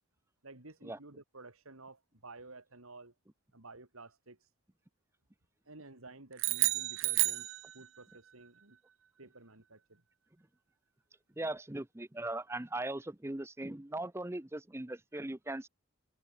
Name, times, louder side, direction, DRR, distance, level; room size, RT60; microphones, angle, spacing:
voice 1, 0.4-3.1 3.5-4.5 5.6-8.8 9.2-10.0, right 3 dB, 85° right, 3.2 m, -53 dB
sound 1, 6.4-8.1, right 19 dB, 65° right, 0.7 m, -31 dB
voice 2, 11.4-15.7, right 2 dB, 10° right, 0.6 m, -39 dB
open air
head